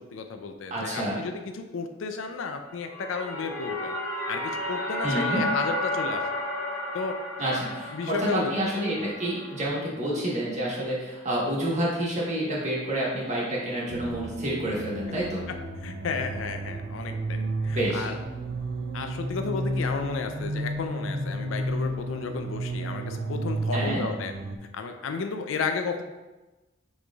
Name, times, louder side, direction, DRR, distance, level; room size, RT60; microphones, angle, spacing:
voice 1, 0.0-3.9 4.3-6.2 6.9-7.2 7.9-8.7 9.0-9.1 15.8-18.2 18.9-24.3 24.7-26.0, left 4 dB, 75° left, 6 dB, 0.4 m, -33 dB
voice 2, 0.7-1.2 5.0-5.5 7.4-15.4 17.7-18.1 23.7-24.0, right 1 dB, 35° right, -5 dB, 1.2 m, -28 dB
sound 1, 2.7-9.7, left 1 dB, 10° left, 0.5 m, -32 dB
sound 2, 13.9-24.6, right 1 dB, 70° right, 0.5 m, -32 dB
7.2 x 3.2 x 2.3 m, 1.1 s
head